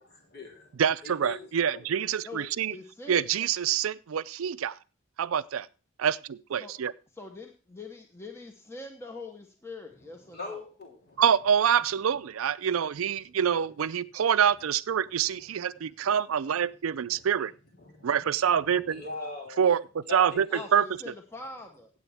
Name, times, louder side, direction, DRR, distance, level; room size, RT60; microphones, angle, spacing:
voice 1, 0.0-1.5 1.7-1.9 10.3-11.2 15.8-16.1 17.1-17.2 17.8-18.3 18.6-19.6 20.1-20.7, left 3 dB, 50° left, 3.5 m, -42 dB
voice 2, 0.8-2.7 3.1-4.8 5.2-5.7 6.0-6.9 11.2-17.5 18.0-19.0 19.6-20.9, right 8 dB, 90° right, 0.4 m, -26 dB
voice 3, 2.2-3.5 6.6-6.8 7.1-10.6 19.1-19.4 20.5-21.9, left 2 dB, 10° left, 1.0 m, -44 dB
16.0 x 8.2 x 3.4 m
head